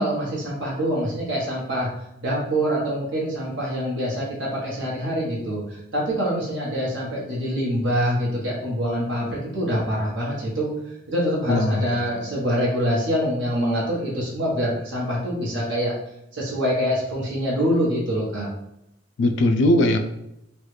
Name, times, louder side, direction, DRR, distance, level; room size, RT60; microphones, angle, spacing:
voice 1, 0.0-1.9 2.2-10.7 11.1-15.9 16.3-18.5, equal, 75° right, -6 dB, 1.0 m, -25 dB
voice 2, 11.5-12.2 19.2-20.0, left 1 dB, 70° left, 4 dB, 0.3 m, -20 dB
3.1 x 2.3 x 3.1 m, 0.82 s
head